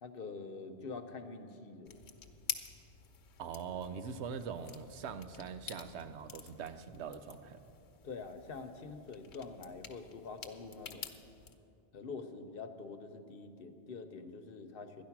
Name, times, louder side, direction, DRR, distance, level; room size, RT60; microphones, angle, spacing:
voice 1, 0.0-2.0 8.0-11.2 11.9-15.0, left 4 dB, 60° left, 7 dB, 1.0 m, -46 dB
sound 1, 1.9-11.5, left 7 dB, 90° left, 1.1 m, -48 dB
voice 2, 3.4-7.6, right 6 dB, 85° right, 10 dB, 1.0 m, -42 dB
12.5 x 10.5 x 5.9 m, 2.7 s
omnidirectional pair, 1.1 m